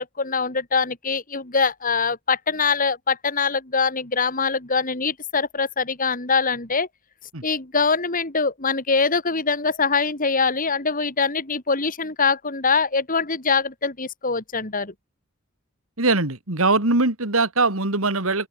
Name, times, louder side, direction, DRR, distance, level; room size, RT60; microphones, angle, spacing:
voice 1, 0.0-6.9 7.4-14.9, left 4 dB, 40° left, 3.2 m, -23 dB
voice 2, 16.0-18.5, right 3 dB, 75° right, 3.0 m, -21 dB
open air
head